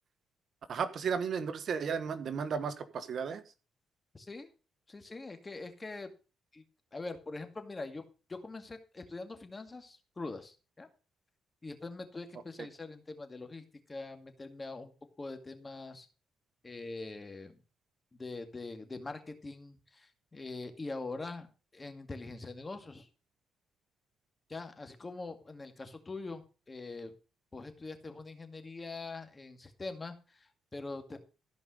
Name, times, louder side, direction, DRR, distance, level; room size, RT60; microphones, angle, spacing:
voice 1, 0.7-3.4 12.6-12.7, right 6 dB, 55° right, 11 dB, 1.3 m, -34 dB
voice 2, 4.1-4.5 4.9-6.1 6.5-6.6 6.9-8.0 8.3-10.9 11.6-14.9 15.2-16.1 16.6-17.6 18.1-21.5 21.7-23.1 24.5-27.1 27.5-31.2, left 3 dB, 25° left, 7 dB, 2.3 m, -43 dB
15.0 x 5.3 x 6.5 m, 0.33 s
cardioid pair, 90°, 0 cm